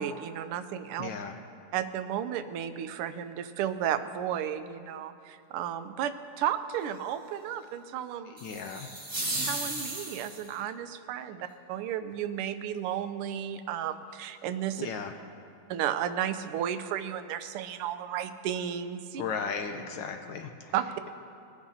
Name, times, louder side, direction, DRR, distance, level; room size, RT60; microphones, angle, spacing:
voice 1, 0.0-1.1 1.7-8.3 9.5-14.9 15.7-19.2 20.7-21.1, right 10 dB, 85° right, 11 dB, 1.5 m, -33 dB
voice 2, 1.0-1.3 8.4-8.9 14.8-15.1 19.2-20.7, left 6 dB, 70° left, 5 dB, 1.2 m, -35 dB
sound 1, 8.4-10.6, right 2 dB, 20° right, 1.6 m, -35 dB
21.5 x 9.7 x 2.7 m, 2.4 s
omnidirectional pair, 2.4 m